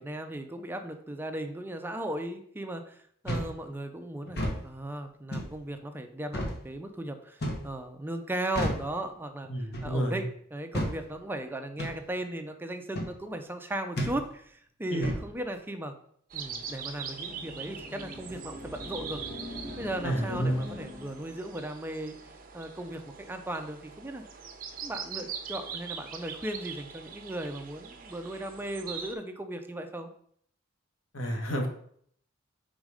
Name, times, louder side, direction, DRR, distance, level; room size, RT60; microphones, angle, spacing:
voice 1, 0.0-15.9 16.3-19.2 19.8-22.2 22.5-24.2 24.8-30.1, right 1 dB, 10° right, 7 dB, 0.5 m, -37 dB
sound 1, 3.3-3.6 4.3-4.6 5.3-5.5 6.3-6.6 7.4-7.7 8.5-8.9 9.7-10.0 10.7-11.0 11.8-12.0 12.9-13.1 14.0-14.2 15.0-15.3, equal, 55° left, 1.3 m, -31 dB
voice 2, 9.5-10.2 14.9-15.1 20.0-20.6 31.1-31.7, right 1 dB, 90° left, 2 dB, 1.4 m, -30 dB
sound 2, 16.3-29.1, right 6 dB, 45° right, 0.7 m, -42 dB
sound 3, 16.7-21.4, left 1 dB, 35° left, 1.5 m, -43 dB
5.1 x 4.1 x 4.8 m, 0.64 s
head